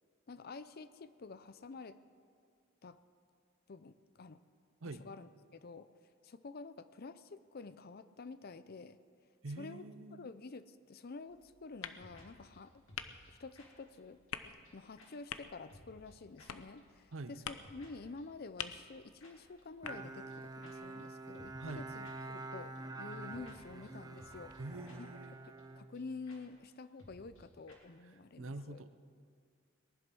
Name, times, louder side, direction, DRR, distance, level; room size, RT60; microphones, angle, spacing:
voice 1, 0.3-2.0 2.8-3.0 3.7-4.4 4.8-5.9 6.2-9.0 9.6-9.8 10.1-12.8 13.3-14.2 14.5-24.5 25.0-25.2 25.4-28.8, left 3 dB, 45° left, 14 dB, 0.5 m, -49 dB
voice 2, 9.4-10.3 17.1-17.3 21.5-21.9 24.6-25.3 28.4-28.9, right 2 dB, 65° right, 11 dB, 0.7 m, -45 dB
sound 1, 11.3-20.9, left 8 dB, 85° left, 0.7 m, -49 dB
sound 2, 11.8-12.3 12.5-12.6 12.9-13.3 13.6-13.7 13.9-14.0 14.3-14.4 14.6-14.7 15.0-15.1 15.3-15.4 15.7-16.1 16.4-16.5 16.8-16.9 17.1-17.2 17.5-17.9 18.2-18.3 19.2-19.3 19.6-19.7 19.9-20.0 20.3-20.4 20.6-20.7 21.0-21.1 21.3-21.8 22.0-22.1 22.4-22.5 22.8-22.9 23.1-23.6 23.8-23.9 24.2-24.6 24.8-25.0 25.2-25.3 25.6-25.7 25.9-26.0 26.3-26.4 26.6-26.7 27.0-27.4 27.7-27.8, left 1 dB, 70° left, 2.9 m, -59 dB
Bowed string instrument, 19.8-26.5, right 2 dB, 20° right, 0.7 m, -47 dB
19.5 x 11.0 x 6.2 m, 2.1 s
head